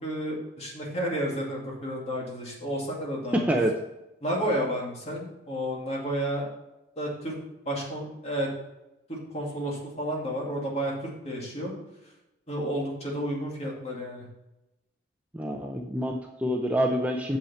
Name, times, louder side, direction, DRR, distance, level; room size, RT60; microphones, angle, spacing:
voice 1, 0.0-3.4 4.2-6.5 7.0-7.3 7.7-8.5 9.1-11.7 12.5-14.3, equal, 30° left, -2 dB, 2.4 m, -31 dB
voice 2, 3.3-3.7 15.3-17.4, equal, 5° right, 1 dB, 0.6 m, -26 dB
8.8 x 7.2 x 4.3 m, 0.95 s
head